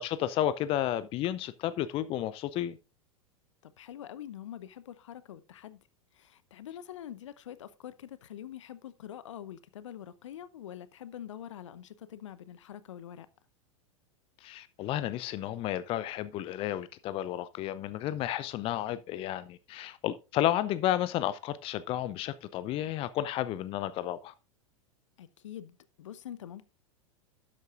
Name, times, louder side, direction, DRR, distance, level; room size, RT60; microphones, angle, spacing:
voice 1, 0.0-2.8 14.4-24.3, left 12 dB, 35° left, 0.6 m, -32 dB
voice 2, 3.6-5.8 6.1-13.3 25.2-26.7, left 10 dB, 65° left, 0.9 m, -45 dB
12.0 x 8.4 x 2.5 m
figure-of-eight pair, 90°, 17 cm